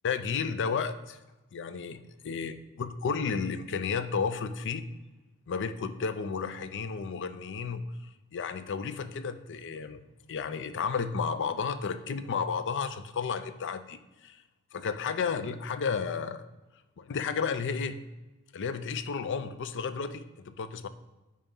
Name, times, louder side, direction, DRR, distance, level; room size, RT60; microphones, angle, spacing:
voice 1, 0.0-1.2 1.5-2.0 2.2-4.9 5.5-7.9 8.3-10.0 10.3-14.4 14.7-16.5 17.0-18.0 18.5-20.9, left 5 dB, 55° left, 11 dB, 0.5 m, -32 dB
5.6 x 4.9 x 5.4 m, 1.1 s
head